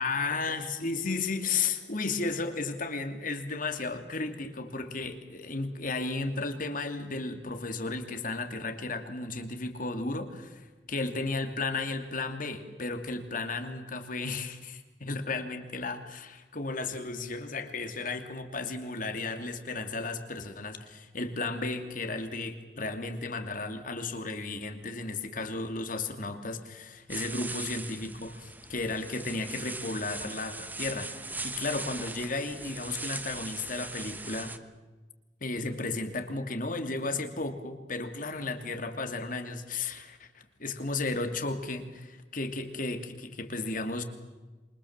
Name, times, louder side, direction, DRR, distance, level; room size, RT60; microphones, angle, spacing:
voice 1, 0.0-34.5 35.4-44.0, left 3 dB, 50° left, 7 dB, 2.8 m, -34 dB
sound 1, 27.1-34.6, right 3 dB, 10° right, 1.2 m, -40 dB
27.5 x 25.0 x 7.4 m, 1.2 s
head